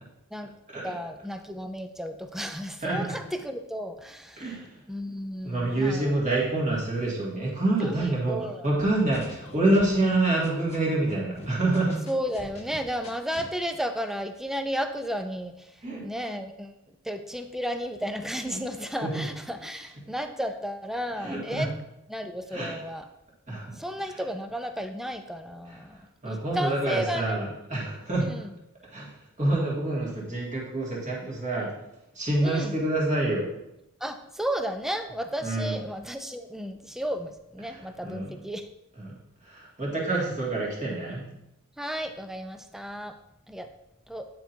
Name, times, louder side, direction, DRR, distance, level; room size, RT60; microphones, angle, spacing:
voice 1, 0.8-4.5 4.9-6.2 7.8-8.7 12.1-15.7 16.0-16.7 17.0-21.7 22.1-23.0 23.7-27.4 28.2-28.5 32.4-32.8 34.0-38.7 41.8-43.2 43.5-43.7 44.1-44.3, equal, ahead, 7 dB, 0.4 m, -33 dB
voice 2, 2.8-3.2 4.4-4.8 5.4-8.4 8.6-12.0 15.8-16.0 18.4-18.5 19.0-19.3 21.2-21.7 22.5-22.8 23.5-23.7 25.7-25.8 26.2-28.4 28.9-31.7 32.2-33.5 35.4-35.8 37.6-38.3 39.0-39.1 39.4-41.3, right 2 dB, 35° right, -4 dB, 1.9 m, -27 dB
sound 1, 8.8-10.8 11.1-13.5, left 1 dB, 30° left, 0.9 m, -45 dB
9.6 x 4.4 x 2.7 m, 0.88 s
head